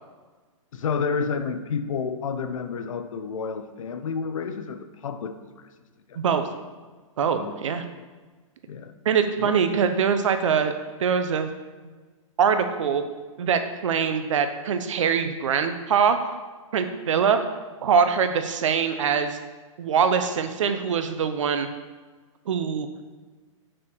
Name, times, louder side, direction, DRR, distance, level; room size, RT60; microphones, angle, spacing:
voice 1, 0.7-5.7 6.1-6.2 7.3-7.6 8.0-8.1 8.7-8.9 9.4-9.6, left 5 dB, 70° left, 9 dB, 0.7 m, -30 dB
voice 2, 6.1-6.5 7.2-7.8 9.0-10.7 11.0-11.5 12.4-13.0 13.4-16.2 16.7-17.4 17.8-19.4 19.8-21.7 22.5-22.9, right 6 dB, 60° right, 8 dB, 0.8 m, -23 dB
6.2 x 4.8 x 6.1 m, 1.3 s
hypercardioid pair, 170°, 18 cm